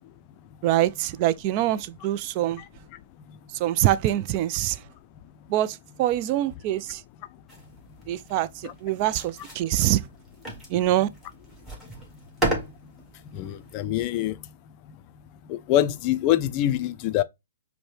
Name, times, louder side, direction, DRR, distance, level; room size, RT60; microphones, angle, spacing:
voice 1, 0.6-2.6 3.6-4.8 5.5-7.0 8.1-10.0 10.7-11.1, right 13 dB, 35° right, 0.3 m, -24 dB
sound 1, 7.5-13.9, right 1 dB, 5° right, 1.6 m, -35 dB
voice 2, 13.3-14.3 15.5-17.2, left 12 dB, 35° left, 0.4 m, -24 dB
5.1 x 2.1 x 3.2 m
hypercardioid pair, 135°, 0 cm